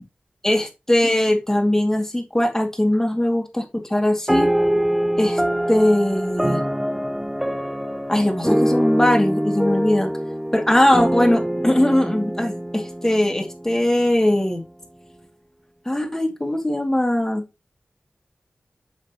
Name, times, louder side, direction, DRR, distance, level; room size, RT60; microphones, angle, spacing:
voice 1, 0.4-4.5 5.2-5.4 5.7-6.6 8.1-10.1 10.5-14.6 15.9-17.4, left 1 dB, 15° left, 2.4 m, -20 dB
sound 1, 4.3-14.0, equal, 5° right, 0.6 m, -24 dB
7.3 x 6.1 x 3.0 m
wide cardioid pair, 60°, 3 cm